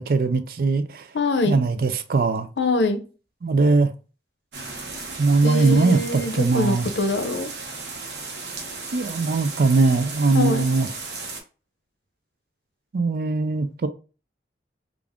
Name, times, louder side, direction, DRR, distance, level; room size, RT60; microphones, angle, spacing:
voice 1, 0.0-1.0 1.5-2.5 3.4-3.9 5.2-6.9 8.9-10.9 12.9-13.9, right 3 dB, 50° right, 0.4 m, -20 dB
voice 2, 1.1-1.6 2.6-3.0 5.4-7.5 10.3-10.7, left 2 dB, 85° left, 0.6 m, -24 dB
sound 1, 4.5-11.4, right 3 dB, 75° right, 0.9 m, -35 dB
3.5 x 2.4 x 3.5 m
head